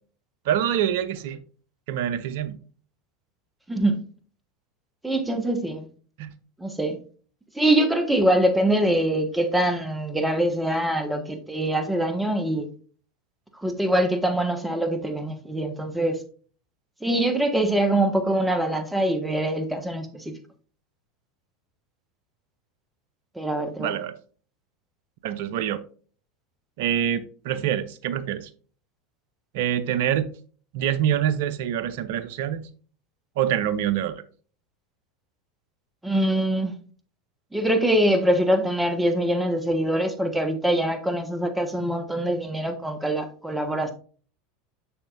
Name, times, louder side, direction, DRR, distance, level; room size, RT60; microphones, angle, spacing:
voice 1, 0.5-1.4 1.9-2.6 6.2-6.3 23.8-24.1 25.2-25.8 26.8-28.5 29.5-30.3 30.7-32.7 33.4-34.2, right 10 dB, 65° right, 14 dB, 0.6 m, -25 dB
voice 2, 3.7-4.0 5.0-5.9 6.6-7.0 7.6-12.7 13.6-16.2 17.0-20.2 23.4-23.9 36.0-36.7 37.5-43.9, right 1 dB, 5° right, 6 dB, 1.3 m, -23 dB
7.1 x 6.4 x 2.5 m, 0.41 s
figure-of-eight pair, 80°, 0 cm